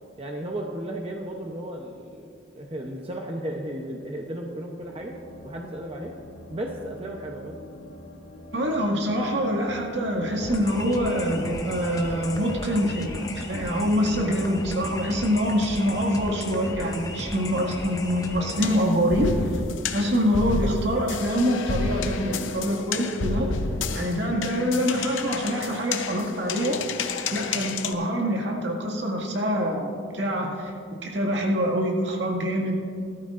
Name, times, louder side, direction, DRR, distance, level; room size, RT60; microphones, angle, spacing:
voice 1, 0.2-2.3 2.6-5.2 5.4-6.2 6.5-7.6, right 1 dB, 30° right, 0 dB, 0.8 m, -34 dB
sound 1, 4.8-19.6, left 1 dB, 60° left, 1.0 m, -44 dB
voice 2, 8.5-19.3 19.9-23.5 23.9-26.8 27.3-30.7 31.0-32.8, equal, 65° right, -1 dB, 2.1 m, -25 dB
sound 2, 10.4-18.7, left 1 dB, 20° left, 0.8 m, -36 dB
sound 3, 18.5-27.9, left 4 dB, 85° left, 0.8 m, -31 dB
19.0 x 13.0 x 2.6 m, 2.3 s
head